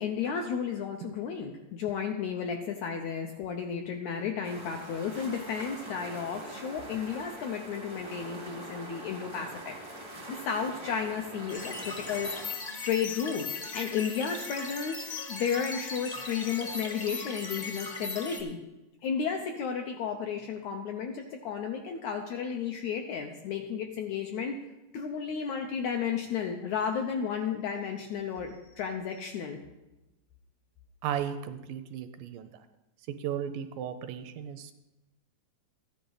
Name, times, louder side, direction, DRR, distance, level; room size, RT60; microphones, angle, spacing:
voice 1, 0.0-9.8 10.3-12.6 12.8-15.0 15.3-18.6 19.0-24.6 24.9-29.6, left 7 dB, 75° left, 3 dB, 1.7 m, -33 dB
sound 1, 4.4-12.5, right 1 dB, 35° right, 0.4 m, -43 dB
sound 2, 11.5-18.4, left 4 dB, 45° left, 0.9 m, -38 dB
voice 2, 31.0-32.6 33.2-34.7, right 9 dB, 80° right, 10 dB, 2.1 m, -35 dB
14.0 x 10.0 x 4.0 m, 1.0 s
omnidirectional pair, 4.1 m